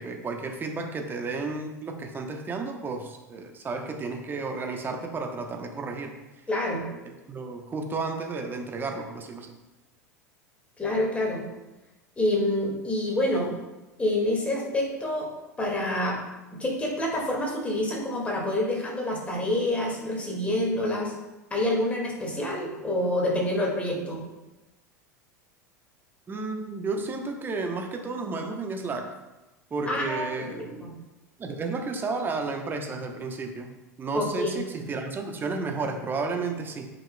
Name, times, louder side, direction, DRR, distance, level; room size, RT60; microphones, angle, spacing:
voice 1, 0.0-6.1 7.3-9.5 26.3-29.1 29.7-30.9 31.4-33.7 34.0-36.9, right 3 dB, 20° right, 4 dB, 0.9 m, -32 dB
voice 2, 6.5-6.8 10.8-11.4 12.2-13.6 14.0-15.3 15.6-16.2 16.6-21.1 21.5-24.2 29.9-30.9 34.1-34.6, left 1 dB, 15° left, -2 dB, 2.0 m, -27 dB
8.8 x 5.3 x 2.2 m, 1.1 s
figure-of-eight pair, 80°, 9 cm